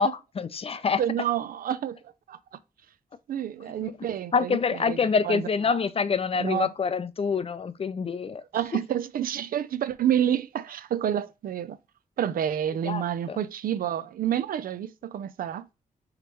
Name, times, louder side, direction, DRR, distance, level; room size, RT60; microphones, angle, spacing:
voice 1, 0.0-1.0 4.3-8.4 12.8-13.4, left 5 dB, 40° left, 0.4 m, -26 dB
voice 2, 1.0-2.0 2.3-2.4 3.3-4.6 4.9-5.0 5.3-5.8 6.4-6.7 8.5-11.8 12.2-15.7, right 10 dB, 75° right, 0.4 m, -28 dB
5.0 x 3.1 x 2.9 m
cardioid pair, 75°, 15 cm